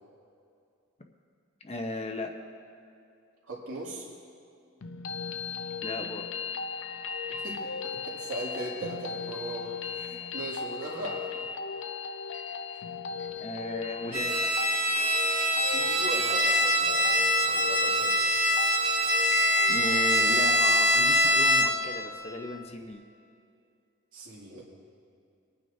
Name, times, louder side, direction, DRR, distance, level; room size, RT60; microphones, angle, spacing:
voice 1, 1.6-2.3 5.8-6.3 10.2-10.3 13.4-14.5 19.7-23.0, left 1 dB, 30° left, 4 dB, 0.7 m, -36 dB
voice 2, 3.5-4.1 7.4-11.3 12.7-12.8 15.6-18.2 24.1-24.6, right 2 dB, 75° right, -3 dB, 2.4 m, -39 dB
sound 1, 4.8-20.8, left 5 dB, 60° left, 0.5 m, -37 dB
Bowed string instrument, 14.1-21.9, equal, 25° right, 1.6 m, -24 dB
24.0 x 9.3 x 2.7 m, 2.5 s
head